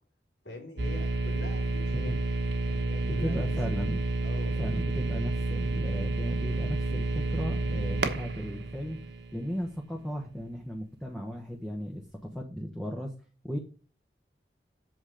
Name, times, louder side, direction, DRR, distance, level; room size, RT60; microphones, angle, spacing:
voice 1, 0.4-2.2 2.6-3.3 4.2-4.6, left 1 dB, 85° left, 1 dB, 3.4 m, -44 dB
sound 1, 0.8-9.7, right 2 dB, 80° right, 1.2 m, -30 dB
voice 2, 3.0-4.0 4.6-9.0 9.3-13.1 13.4-13.6, equal, 5° left, 0 dB, 1.0 m, -36 dB
8.1 x 4.8 x 5.1 m, 0.40 s
head